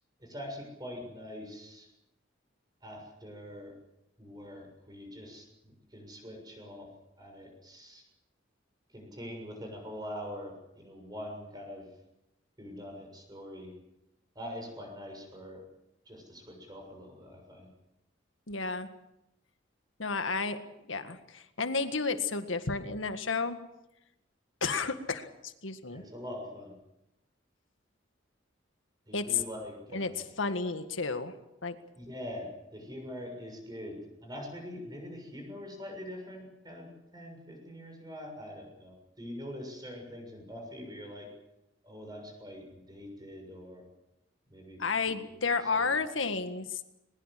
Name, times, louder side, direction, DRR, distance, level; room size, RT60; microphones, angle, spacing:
voice 1, 0.2-1.9 2.8-3.7 4.2-6.9 7.2-8.0 8.9-11.9 12.6-13.7 14.4-15.6 16.1-17.7 25.9-26.7 29.1-30.2 31.9-36.9 37.1-41.3 41.8-43.9 44.5-44.8 45.1-46.3, equal, 20° right, 3 dB, 6.8 m, -44 dB
voice 2, 18.5-18.9 20.0-20.6 20.9-23.6 24.6-26.0 29.1-29.4 29.9-30.1 30.4-31.3 31.6-31.8 44.8-46.8, left 4 dB, 85° left, 9 dB, 1.8 m, -31 dB
22.0 x 21.0 x 7.6 m, 0.88 s
head